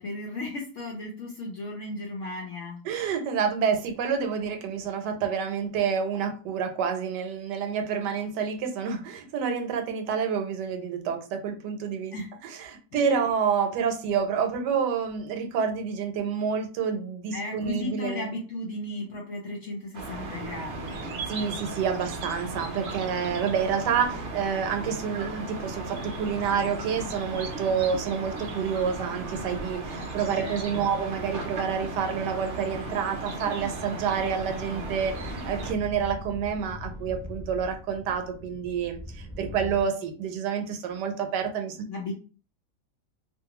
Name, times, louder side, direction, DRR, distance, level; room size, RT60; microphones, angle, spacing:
voice 1, 0.0-2.8 12.1-12.3 12.9-13.2 17.3-21.1 30.4-30.9 41.9-42.1, left 2 dB, 70° left, 0 dB, 0.7 m, -35 dB
voice 2, 2.8-12.2 12.4-18.3 21.3-41.8, right 7 dB, 80° right, 6 dB, 1.2 m, -28 dB
sound 1, 19.9-35.7, right 2 dB, 65° right, 0.7 m, -36 dB
sound 2, 33.4-39.8, left 1 dB, 5° right, 0.7 m, -41 dB
2.5 x 2.5 x 2.8 m, 0.37 s
omnidirectional pair, 1.8 m